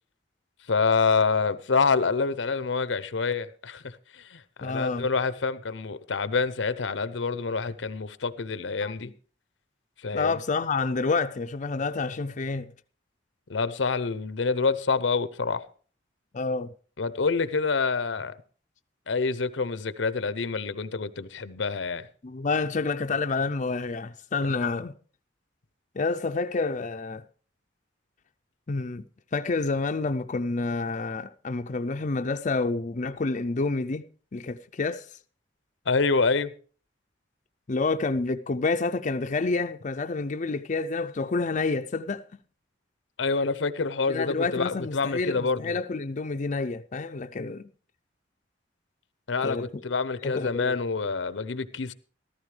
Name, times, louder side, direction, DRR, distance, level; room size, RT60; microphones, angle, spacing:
voice 1, 0.7-9.1 10.0-10.4 13.5-15.6 17.0-18.3 19.1-22.1 35.9-36.5 43.2-45.7 49.3-51.9, left 4 dB, 85° left, 0.7 m, -27 dB
voice 2, 4.6-5.0 8.8-9.1 10.1-12.7 16.3-16.7 22.2-24.9 25.9-27.2 28.7-29.0 29.3-34.0 34.3-35.1 37.7-42.2 44.1-47.7 49.4-49.8 50.2-50.7, left 3 dB, 40° left, 0.5 m, -28 dB
14.5 x 13.5 x 3.3 m
head